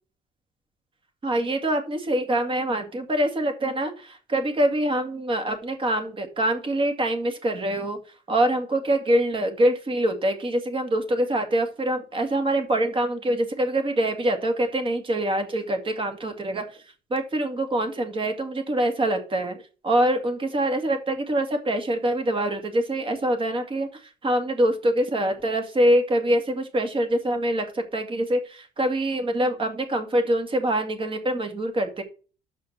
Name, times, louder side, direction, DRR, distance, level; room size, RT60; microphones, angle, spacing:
voice 1, 1.2-8.0 8.3-16.6 17.1-23.9 24.2-32.0, right 1 dB, 30° right, 6 dB, 2.2 m, -24 dB
6.8 x 5.5 x 7.3 m, 0.36 s
cardioid pair, 110°, 17 cm